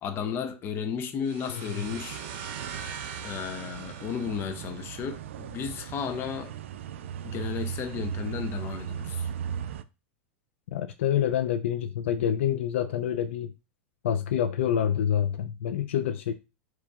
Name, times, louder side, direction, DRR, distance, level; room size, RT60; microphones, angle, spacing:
voice 1, 0.0-2.2 3.2-6.5 7.2-9.3, left 7 dB, 35° left, 0.8 m, -34 dB
sound 1, 1.3-5.0, right 6 dB, 60° right, 0.8 m, -42 dB
voice 2, 1.5-1.9 10.7-13.5 14.0-16.3, left 9 dB, 80° left, 0.4 m, -27 dB
sound 2, 1.8-9.8, right 8 dB, 80° right, 0.3 m, -37 dB
4.5 x 3.0 x 2.4 m
hypercardioid pair, 115°, 7 cm